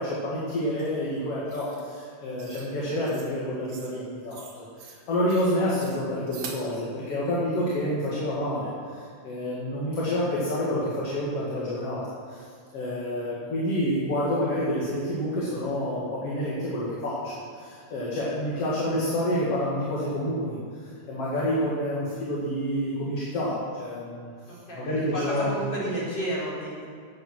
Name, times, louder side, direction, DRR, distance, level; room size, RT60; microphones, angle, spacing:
voice 1, 0.0-4.4 4.8-12.0 12.3-12.4 12.7-20.6 21.1-24.3 24.7-25.5, equal, 55° left, -6 dB, 3.0 m, -28 dB
sound 1, 0.8-0.9 1.5-1.8 2.4-2.7 3.1-3.3 3.7-4.0 4.3-5.0 5.3-5.5 5.8-6.7, right 6 dB, 65° right, 2.6 m, -44 dB
voice 2, 24.5-26.9, right 1 dB, 35° left, -8 dB, 5.0 m, -32 dB
14.0 x 8.9 x 6.1 m, 2.1 s
omnidirectional pair, 3.4 m